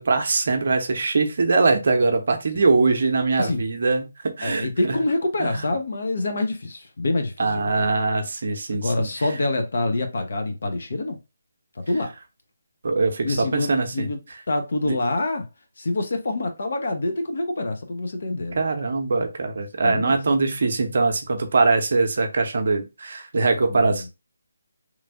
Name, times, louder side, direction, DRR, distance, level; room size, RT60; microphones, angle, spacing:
voice 1, 0.0-4.7 5.4-5.5 7.4-9.1 12.8-14.1 14.8-15.0 18.5-24.0, right 3 dB, 50° right, 0.7 m, -22 dB
voice 2, 4.4-7.9 8.7-11.2 11.9-12.1 13.2-14.2 14.5-15.5 15.8-18.6 19.8-20.2 23.6-24.1, left 2 dB, 55° left, 0.7 m, -26 dB
3.1 x 2.5 x 3.4 m
figure-of-eight pair, 150°, 0 cm